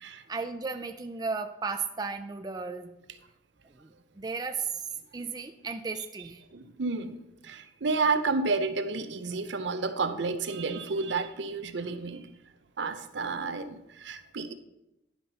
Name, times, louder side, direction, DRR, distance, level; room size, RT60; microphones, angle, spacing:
voice 1, 0.3-3.0 3.8-4.8 5.1-6.4, right 4 dB, 20° right, 6 dB, 0.4 m, -35 dB
voice 2, 6.5-12.3 12.8-14.5, right 4 dB, 70° right, 10 dB, 0.6 m, -31 dB
10.5 x 5.8 x 4.0 m, 0.89 s
head